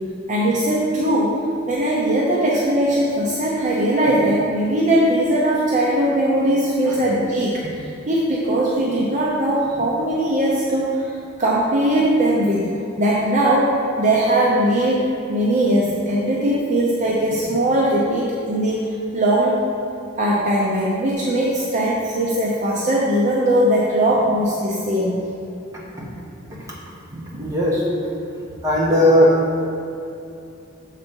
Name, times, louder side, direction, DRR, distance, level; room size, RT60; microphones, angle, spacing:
voice 1, 0.3-1.4 1.7-11.1 11.4-15.0 15.3-19.6 20.2-25.2 27.1-27.5, right 1 dB, 35° right, -5 dB, 0.7 m, -20 dB
voice 2, 27.4-27.8 28.4-29.3, left 1 dB, 15° right, -6 dB, 1.3 m, -18 dB
7.0 x 4.1 x 5.3 m, 2.7 s
head